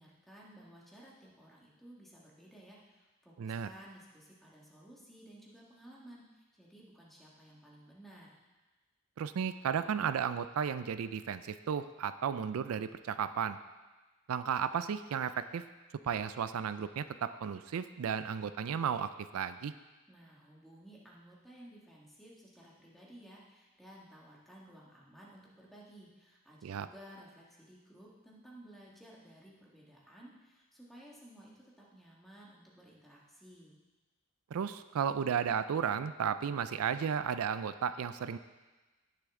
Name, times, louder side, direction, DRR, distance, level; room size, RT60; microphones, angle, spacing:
voice 1, 0.0-8.3 20.1-33.8, right 1 dB, ahead, -5 dB, 1.7 m, -55 dB
voice 2, 3.4-3.7 9.2-13.6 14.3-15.6 16.0-19.7 26.6-26.9 34.5-38.4, right 7 dB, 75° right, 12 dB, 0.4 m, -34 dB
17.0 x 6.7 x 3.7 m, 1.2 s
head